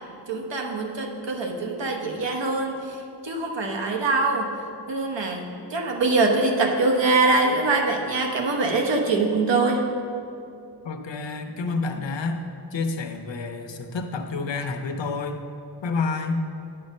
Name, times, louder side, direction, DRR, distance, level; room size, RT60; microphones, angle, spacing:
voice 1, 0.3-3.0 3.2-4.5 4.9-9.8, right 3 dB, 80° right, 2 dB, 1.2 m, -23 dB
voice 2, 10.8-12.4 12.7-15.4 15.8-16.5, left 3 dB, 80° left, 6 dB, 0.8 m, -29 dB
10.5 x 5.7 x 5.4 m, 2.5 s
wide cardioid pair, 100°, 43 cm